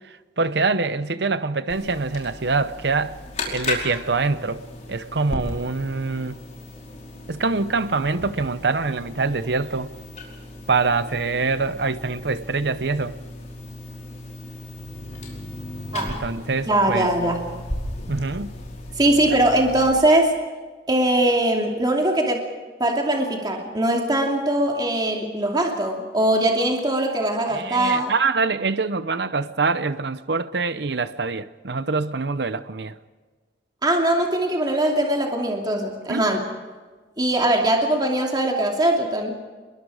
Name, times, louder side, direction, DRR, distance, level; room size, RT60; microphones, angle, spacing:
voice 1, 0.4-3.2 3.5-4.6 4.9-6.3 7.3-9.9 10.7-13.1 16.2-17.1 18.1-18.5 19.3-19.4 27.5-32.9 36.1-36.3, right 4 dB, 65° right, 0.8 m, -24 dB
sound 1, 1.7-19.9, left 2 dB, 40° left, 5.2 m, -36 dB
voice 2, 16.7-17.4 19.0-20.4 20.9-22.4 22.8-28.1 33.8-36.4 37.2-39.3, right 1 dB, 25° right, 2.7 m, -21 dB
28.5 x 22.0 x 4.9 m
head